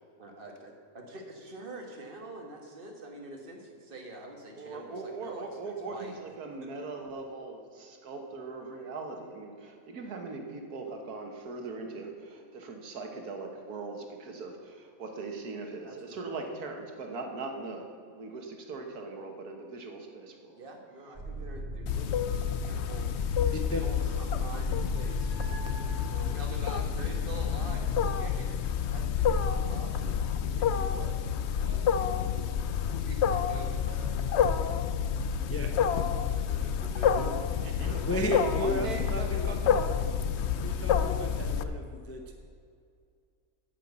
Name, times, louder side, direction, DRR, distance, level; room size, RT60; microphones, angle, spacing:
voice 1, 0.2-6.2 6.6-6.7 15.8-16.6 20.5-23.2 23.7-31.9 32.9-34.8 35.0-35.3 35.9-37.4 37.9-38.0, right 2 dB, 35° right, 1 dB, 1.5 m, -46 dB
voice 2, 4.5-20.6 32.4-32.5 37.6-40.1 40.6-40.8, right 3 dB, 70° right, 3 dB, 1.7 m, -40 dB
sound 1, 21.1-28.3, right 1 dB, 15° right, 3.3 m, -39 dB
Wild animals, 21.9-41.6, left 8 dB, 75° left, 0.6 m, -29 dB
voice 3, 38.1-39.8 40.6-42.3, left 1 dB, 25° left, 3 dB, 0.3 m, -34 dB
9.0 x 6.4 x 8.1 m, 2.3 s
omnidirectional pair, 1.7 m